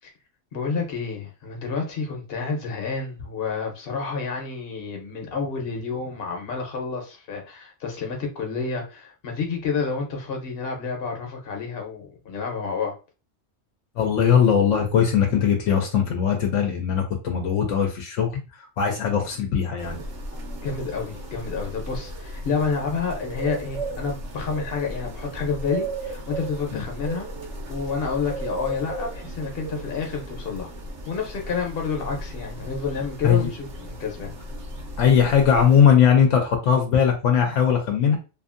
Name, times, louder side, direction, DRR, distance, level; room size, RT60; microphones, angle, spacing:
voice 1, 0.5-12.9 20.6-27.3 27.7-30.7 31.1-34.4, left 5 dB, 55° left, 1.0 m, -29 dB
voice 2, 14.0-20.0 26.7-26.8 33.2-33.5 35.0-38.2, left 7 dB, 80° left, 0.9 m, -20 dB
sound 1, 19.8-35.8, right 1 dB, 75° right, 1.1 m, -35 dB
2.7 x 2.5 x 2.5 m
omnidirectional pair, 1.3 m